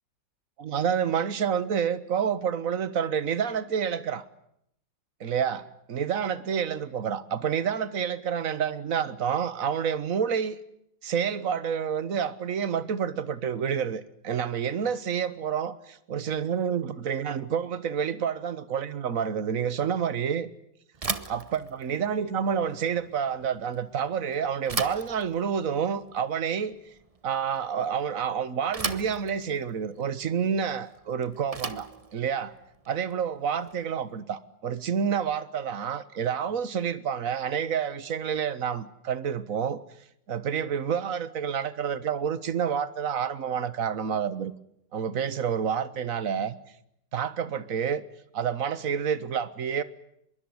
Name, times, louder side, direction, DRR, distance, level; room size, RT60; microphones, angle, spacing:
voice 1, 0.6-4.2 5.2-10.6 11.0-20.5 21.3-26.8 27.2-32.5 32.9-39.8 40.3-44.5 44.9-46.5 47.1-48.0 48.3-49.8, right 7 dB, 50° right, 1.7 m, -29 dB
Bicycle / Thump thud, 20.9-34.0, right 4 dB, 25° right, 1.0 m, -38 dB
24.5 x 22.5 x 9.7 m
omnidirectional pair, 1.9 m